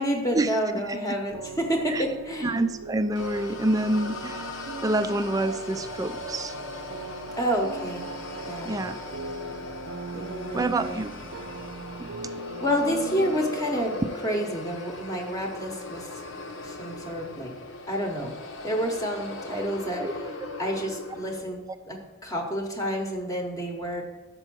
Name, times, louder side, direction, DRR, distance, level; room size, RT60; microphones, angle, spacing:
voice 1, 0.0-2.6 7.4-8.1 8.4-8.7 10.1-11.0 12.6-13.9 14.2-16.1 16.6-17.5 17.9-18.3 18.6-20.0 20.6-21.6 21.9-24.0, equal, 15° left, 1 dB, 0.8 m, -29 dB
sound 1, 1.3-13.8, right 3 dB, 80° right, 0.5 m, -39 dB
voice 2, 2.4-6.5 8.6-9.0 10.5-11.1 12.0-12.3 19.5-19.6 20.0-20.1, right 2 dB, 20° right, 10 dB, 0.3 m, -27 dB
sound 2, 3.2-21.4, left 2 dB, 75° left, 0.8 m, -39 dB
6.6 x 4.5 x 6.0 m, 1.1 s
head